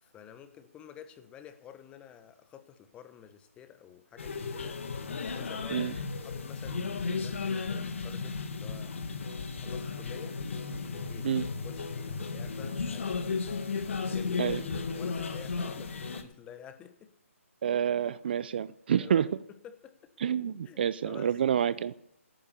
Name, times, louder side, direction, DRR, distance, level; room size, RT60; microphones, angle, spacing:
voice 1, 0.0-4.8 5.2-5.9 6.2-9.0 9.6-10.4 10.7-11.4 11.6-13.4 13.9-14.6 14.9-17.1 19.0-19.3 19.6-20.1 20.6-21.3, left 9 dB, 15° left, 1.1 m, -50 dB
sound 1, 4.2-16.2, left 4 dB, 60° left, 1.9 m, -34 dB
voice 2, 17.6-19.3 20.2-21.9, right 9 dB, 45° right, 0.5 m, -28 dB
14.5 x 10.0 x 6.8 m
figure-of-eight pair, 145°, 8 cm